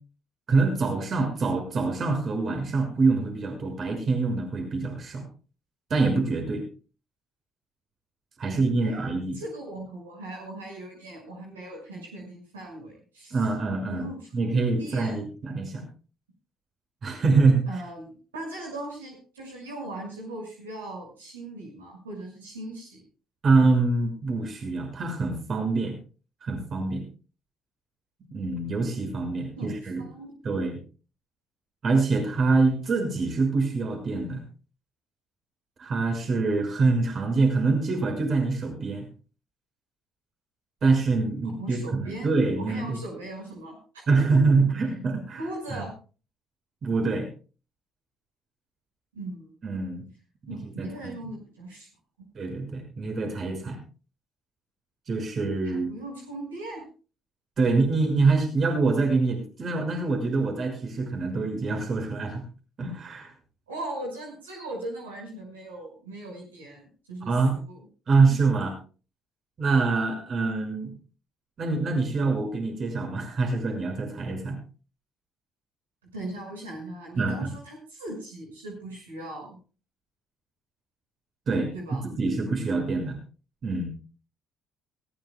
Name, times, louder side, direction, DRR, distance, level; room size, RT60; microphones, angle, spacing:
voice 1, 0.5-5.2 5.9-6.6 8.4-9.4 13.3-14.1 14.3-15.8 17.0-17.7 23.4-26.0 26.4-27.0 28.3-30.0 30.4-30.8 31.8-34.4 35.8-39.1 40.8-43.0 44.1-45.4 45.7-45.8 46.8-47.3 49.6-50.1 50.4-51.1 52.3-53.8 55.1-55.9 57.6-62.4 62.8-63.3 67.3-67.5 68.1-68.7 69.6-70.9 71.6-74.6 77.2-77.5 81.5-83.2 83.6-83.9, right 3 dB, 45° right, 3 dB, 5.9 m, -25 dB
voice 2, 8.4-13.4 13.9-15.2 17.7-23.0 29.6-30.3 41.6-42.3 42.6-44.4 45.4-45.9 49.1-49.9 50.5-51.9 55.6-56.8 63.7-67.9 76.0-79.6 81.7-82.0, right 1 dB, 90° right, -1 dB, 6.0 m, -39 dB
20.0 x 17.0 x 2.3 m, 0.36 s
hypercardioid pair, 50°, 0 cm